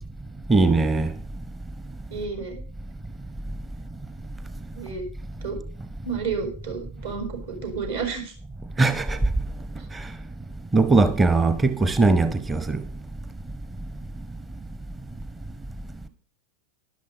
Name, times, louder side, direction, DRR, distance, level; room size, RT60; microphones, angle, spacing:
voice 1, 0.5-1.1 8.8-9.2 9.9-10.1 10.7-12.8, right 3 dB, 15° right, 0.8 m, -20 dB
voice 2, 2.1-2.6 4.8-5.0 5.4-5.6 6.0-8.3, right 5 dB, 65° right, 5.0 m, -31 dB
12.5 x 11.5 x 5.0 m
figure-of-eight pair, 90°, 0 cm